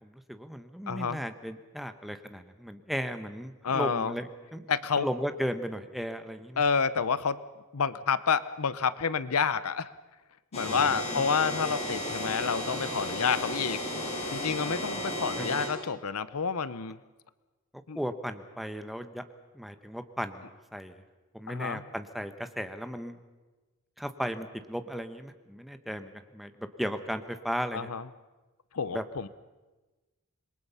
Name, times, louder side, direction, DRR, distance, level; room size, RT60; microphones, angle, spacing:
voice 1, 0.0-4.7 5.0-6.6 10.7-11.0 15.4-15.5 17.7-19.2 19.5-21.0 21.3-23.1 24.0-27.9 28.9-29.0, equal, ahead, 9 dB, 1.1 m, -36 dB
voice 2, 0.9-1.2 3.6-4.1 4.7-5.1 6.6-7.4 7.7-9.9 10.5-13.8 14.3-17.0 17.9-18.0 21.5-21.8 27.7-28.0 28.7-29.3, left 6 dB, 80° left, 16 dB, 0.8 m, -29 dB
sound 1, 10.5-15.7, left 1 dB, 30° left, 6.4 m, -34 dB
27.0 x 22.0 x 5.7 m, 1.2 s
head